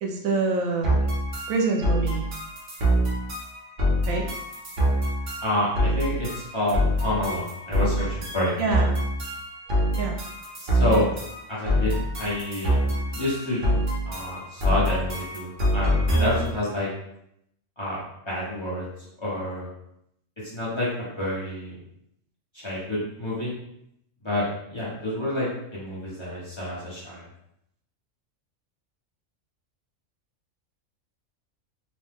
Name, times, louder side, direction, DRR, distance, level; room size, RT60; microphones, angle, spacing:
voice 1, 0.0-1.0 1.5-2.3 4.1-4.3 8.6-8.9 10.0-10.2 12.2-12.3, right 4 dB, 85° right, 2 dB, 1.0 m, -26 dB
sound 1, 0.8-16.6, equal, 45° right, 0.8 m, -25 dB
voice 2, 5.4-8.6 10.7-11.1 11.5-11.9 12.2-12.8 13.1-13.7 14.1-16.9 17.8-18.0 18.3-18.8 19.2-19.7 20.5-21.8 22.5-23.5 24.2-27.2, left 1 dB, 25° left, -8 dB, 0.9 m, -28 dB
2.8 x 2.2 x 3.4 m, 0.75 s
omnidirectional pair, 1.4 m